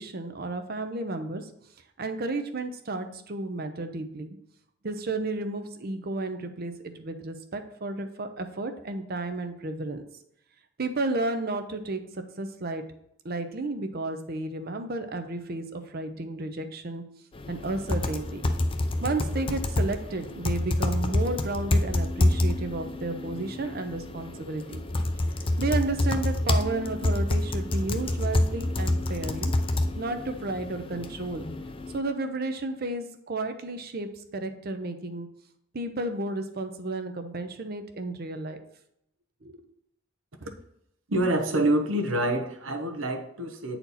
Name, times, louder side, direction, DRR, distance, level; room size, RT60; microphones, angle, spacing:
voice 1, 0.0-1.5 2.0-4.4 4.8-10.0 10.8-12.0 12.4-12.8 13.2-17.0 17.5-18.5 19.0-24.8 25.6-29.5 30.0-31.4 31.9-35.3 35.7-38.6 39.4-39.6, right 2 dB, 50° right, 8 dB, 0.7 m, -32 dB
sound 1, 17.3-32.0, left 1 dB, 25° left, 0.5 m, -28 dB
voice 2, 41.1-43.8, right 1 dB, 85° right, 5 dB, 1.0 m, -26 dB
8.4 x 4.3 x 4.1 m, 0.75 s
head